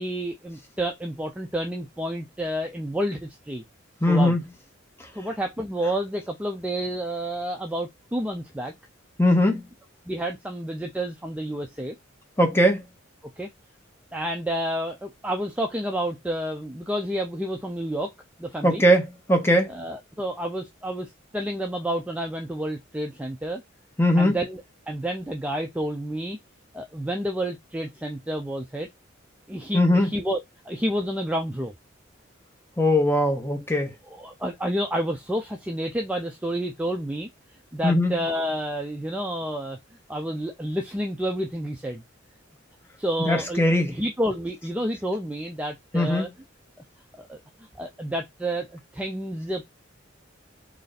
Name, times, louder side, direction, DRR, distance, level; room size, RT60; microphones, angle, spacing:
voice 1, 0.0-3.6 4.1-4.4 5.2-8.7 10.1-12.0 13.4-13.5 14.1-18.1 18.4-18.8 19.7-23.6 24.2-24.6 24.9-26.4 26.7-28.9 29.5-30.4 30.7-31.7 34.1-37.3 37.7-39.8 40.1-42.0 43.0-46.3 47.2-47.4 47.8-48.7 48.9-49.7, equal, 5° right, 0.3 m, -29 dB
voice 2, 4.0-4.4 9.2-9.6 12.4-12.8 18.6-19.7 24.0-24.4 29.7-30.1 32.8-33.9 37.8-38.2 43.2-44.0 45.9-46.3, left 1 dB, 10° left, 0.9 m, -20 dB
3.3 x 2.6 x 3.9 m
head